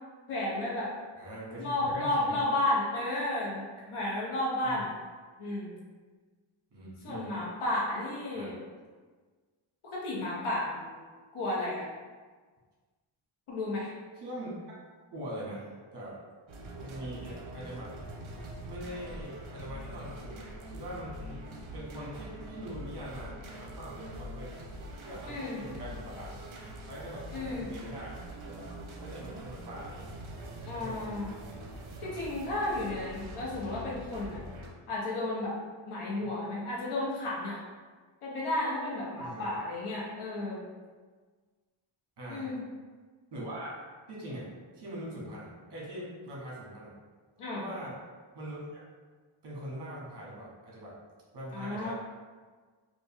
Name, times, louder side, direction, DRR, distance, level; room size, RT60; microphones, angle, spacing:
voice 1, 0.3-0.9 1.6-4.9 5.4-5.8 7.0-8.6 9.9-11.0 11.3-11.9 13.5-13.9 25.3-25.6 27.3-27.7 30.6-31.4 32.0-34.4 34.9-35.6 35.9-37.6 38.2-40.7 42.3-42.6 47.4-47.6 51.5-51.9, left 1 dB, 80° left, -5 dB, 1.1 m, -32 dB
voice 2, 1.2-2.4 4.6-4.8 6.7-7.3 8.3-8.5 14.1-14.6 15.1-16.1 16.8-17.9 18.6-21.5 21.7-24.6 25.0-26.4 26.9-28.2 28.4-30.1 30.8-31.1 36.0-36.2 39.2-39.6 42.2-42.5 43.3-43.7 44.1-46.9 47.5-48.0 48.3-48.8 49.4-50.9 51.3-51.9, right 1 dB, 55° right, -5 dB, 1.2 m, -42 dB
sound 1, 16.5-34.7, right 1 dB, 70° right, 0.7 m, -44 dB
3.1 x 2.5 x 3.4 m, 1.5 s
wide cardioid pair, 165°, 49 cm